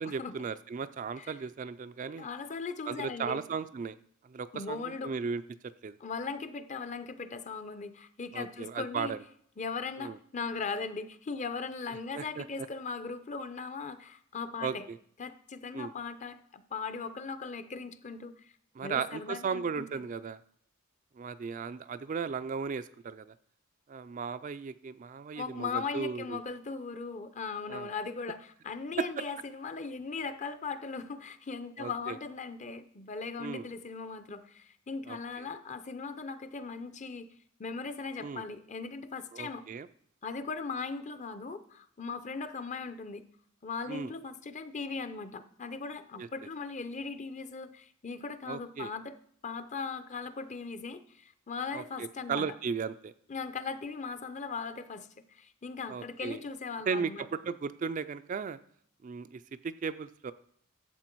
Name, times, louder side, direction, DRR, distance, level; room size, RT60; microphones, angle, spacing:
voice 1, 0.0-2.3 2.9-4.0 4.2-5.4 5.8-6.0 8.3-9.2 10.0-10.2 12.1-12.7 14.6-15.0 15.7-15.9 18.8-20.4 21.2-23.4 23.9-26.4 27.7-27.9 29.0-29.2 31.8-32.2 33.4-33.7 35.1-35.5 38.2-38.4 39.3-39.9 43.9-44.1 46.2-46.3 48.5-48.9 51.7-53.1 55.9-56.4 56.9-58.6 59.0-60.3, right 5 dB, 35° right, 12 dB, 0.3 m, -36 dB
voice 2, 2.2-3.4 4.5-5.1 6.0-9.1 9.6-14.9 15.2-18.5 18.8-20.1 25.3-37.3 37.6-39.6 40.2-43.2 43.6-49.2 49.4-52.5 53.3-57.3, left 4 dB, 35° left, 11 dB, 0.6 m, -39 dB
11.5 x 7.7 x 4.5 m, 0.65 s
head